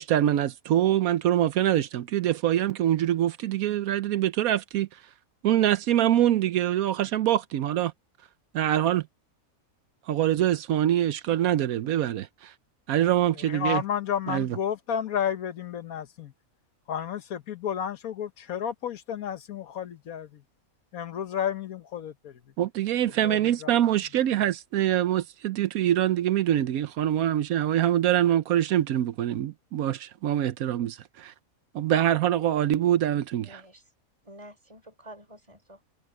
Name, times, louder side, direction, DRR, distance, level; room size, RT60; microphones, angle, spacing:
voice 1, 0.0-5.0 5.4-7.9 8.5-9.1 10.1-12.5 12.9-13.8 14.3-14.6 22.6-31.3 31.7-33.6, right 12 dB, 85° right, 1.1 m, -24 dB
voice 2, 13.4-16.3 16.9-20.4 20.9-22.3 23.2-23.7, left 8 dB, 80° left, 1.5 m, -31 dB
voice 3, 33.4-33.8 34.2-35.8, right 1 dB, 20° right, 4.9 m, -48 dB
omnidirectional pair, 1.5 m